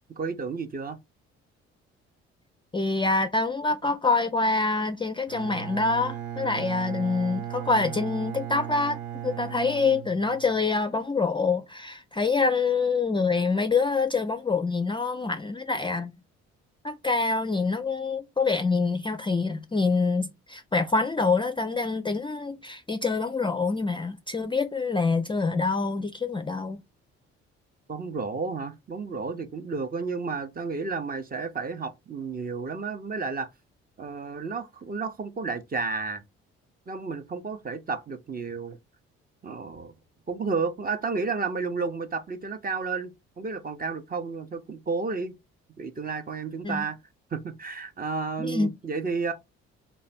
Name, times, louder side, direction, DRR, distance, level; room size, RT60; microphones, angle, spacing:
voice 1, 0.2-1.0 27.9-33.5 34.0-36.2 36.9-38.8 39.4-39.9 40.3-45.3 45.8-47.0 47.3-49.3, right 4 dB, 30° right, 0.7 m, -32 dB
voice 2, 2.7-16.1 16.8-26.8 46.6-46.8 48.4-48.7, left 4 dB, 15° left, 0.4 m, -26 dB
Bowed string instrument, 5.3-10.8, right 11 dB, 70° right, 0.6 m, -37 dB
3.2 x 2.3 x 4.0 m
hypercardioid pair, 50°, 31 cm